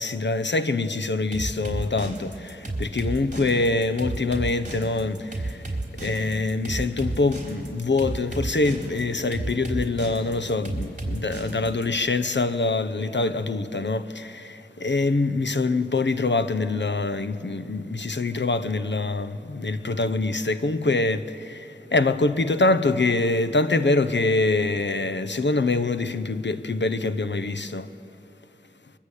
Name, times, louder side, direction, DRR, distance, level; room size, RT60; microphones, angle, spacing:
voice 1, 0.0-27.9, left 3 dB, 70° left, 1.0 m, -25 dB
sound 1, 1.3-11.9, right 2 dB, 40° right, 4.1 m, -31 dB
24.0 x 22.5 x 8.4 m
wide cardioid pair, 60°, 19 cm